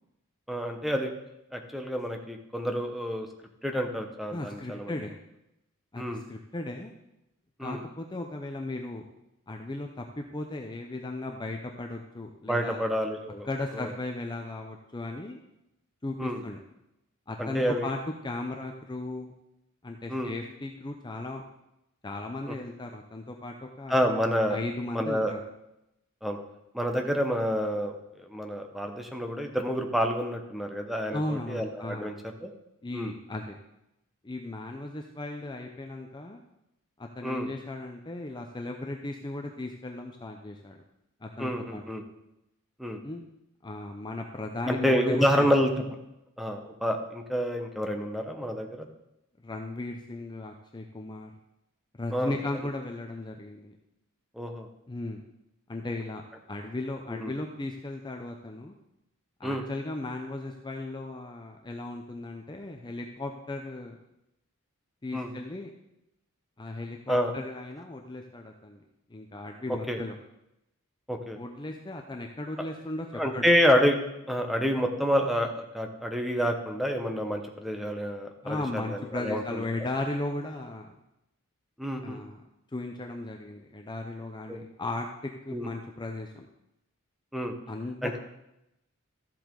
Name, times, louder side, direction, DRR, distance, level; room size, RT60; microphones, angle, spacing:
voice 1, 0.5-1.1 1.5-3.3 3.6-4.9 6.0-6.2 7.6-7.8 12.5-13.5 13.8-13.9 16.2-16.4 17.4-17.9 20.1-20.3 22.5-22.6 23.9-24.6 24.9-25.3 26.2-26.4 26.7-27.9 28.2-32.1 32.4-32.5 32.9-33.1 37.2-37.5 41.4-42.0 42.8-43.0 44.7-45.7 46.4-48.9 52.1-52.3 54.4-54.7 57.1-57.3 59.4-59.6 65.1-65.3 67.1-67.3 69.9-70.0 71.1-71.4 73.1-74.0 74.3-79.6 81.8-82.2 84.5-84.6 85.5-85.7 87.3-87.5 88.0-88.2, equal, ahead, 3 dB, 0.9 m, -28 dB
voice 2, 4.3-5.2 5.9-6.9 7.6-9.0 9.5-12.9 13.5-15.4 16.0-16.6 17.3-19.3 19.8-21.4 22.0-23.9 24.5-25.4 31.1-32.1 32.8-33.6 34.2-36.4 37.0-40.8 41.2-41.8 43.0-43.2 43.6-45.6 49.4-51.3 52.0-53.8 54.9-55.2 55.7-56.2 56.5-58.7 59.4-64.0 65.0-65.7 66.6-68.8 69.1-70.2 71.4-73.5 78.4-80.9 82.0-82.4 82.7-86.5 87.7-88.2, left 2 dB, 20° left, 3 dB, 0.6 m, -36 dB
13.0 x 7.5 x 3.9 m, 0.86 s
head